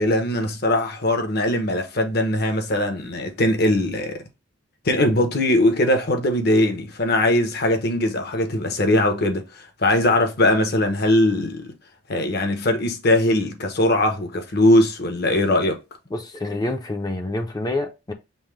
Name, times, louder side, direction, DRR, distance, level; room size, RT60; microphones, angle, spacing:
voice 1, 0.0-4.2 4.8-9.4 9.8-11.7 12.1-15.8, left 1 dB, 55° left, 0.9 m, -20 dB
voice 2, 16.1-18.1, left 2 dB, 20° left, 0.5 m, -27 dB
5.5 x 2.1 x 3.1 m
head